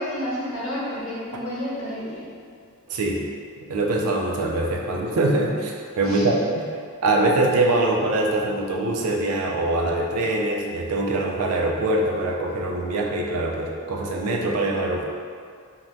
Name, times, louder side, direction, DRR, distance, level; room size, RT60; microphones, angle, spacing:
voice 1, 0.0-2.3 6.0-6.3, equal, 70° left, -7 dB, 0.8 m, -30 dB
voice 2, 2.9-3.2 3.7-6.7 7.0-15.0, right 2 dB, 85° right, 0 dB, 0.4 m, -23 dB
3.1 x 2.2 x 2.5 m, 2.2 s
head